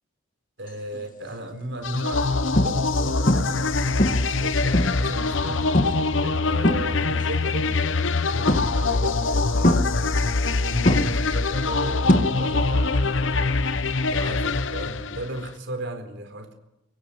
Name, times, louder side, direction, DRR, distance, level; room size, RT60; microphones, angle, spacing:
voice 1, 0.6-5.6 6.2-9.9 10.4-13.8 14.1-16.5, right 1 dB, 65° right, 6 dB, 4.3 m, -36 dB
sound 1, 0.9-1.2 1.8-2.0 2.6-3.0 3.3-3.7 4.0-5.1 5.7-6.1 6.4-7.3 8.5-9.0 9.6-10.5 10.8-12.7 13.0-13.4 15.5-15.6, left 1 dB, 40° left, 2.1 m, -23 dB
sound 2, 1.8-15.5, left 3 dB, 70° left, 1.0 m, -24 dB
24.0 x 23.5 x 8.8 m, 0.92 s
head